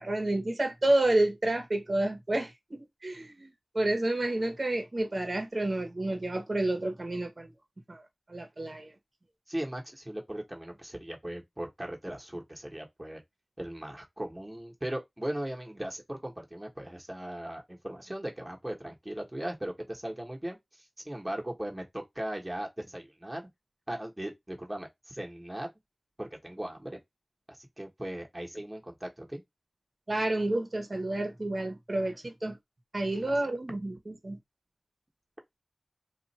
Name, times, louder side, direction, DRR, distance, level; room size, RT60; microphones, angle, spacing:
voice 1, 0.0-7.5 7.9-8.0 8.3-8.9 30.1-32.6 32.9-34.4, right 1 dB, 55° right, 1.0 m, -30 dB
voice 2, 9.5-13.2 13.6-23.5 23.9-25.7 26.2-27.0 27.5-29.4 33.2-33.3, right 1 dB, 20° right, 1.1 m, -38 dB
2.5 x 2.4 x 4.1 m
wide cardioid pair, 50°, 0 cm